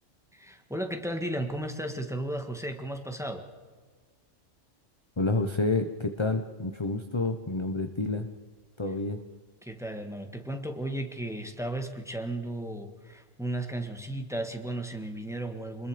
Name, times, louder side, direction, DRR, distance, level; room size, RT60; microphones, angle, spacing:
voice 1, 0.3-3.4 9.6-15.9, right 1 dB, ahead, 5 dB, 1.9 m, -34 dB
voice 2, 5.2-8.3 8.8-9.2, left 3 dB, 25° left, 7 dB, 1.0 m, -29 dB
26.5 x 21.5 x 5.1 m, 1.5 s
omnidirectional pair, 1.3 m